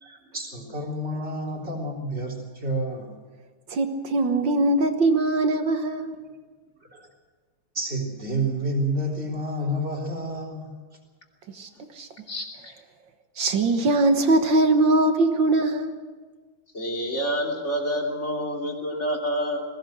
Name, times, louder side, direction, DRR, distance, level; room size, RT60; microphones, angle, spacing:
voice 1, 0.0-3.1 6.8-7.1 7.7-10.7, right 1 dB, 30° right, -1 dB, 3.9 m, -29 dB
voice 2, 3.7-6.2 11.5-12.1 13.4-16.0, right 2 dB, 65° right, 6 dB, 2.0 m, -21 dB
voice 3, 12.3-12.7 16.7-19.6, equal, 30° left, 0 dB, 3.3 m, -28 dB
21.0 x 17.0 x 7.8 m, 1.4 s
omnidirectional pair, 2.3 m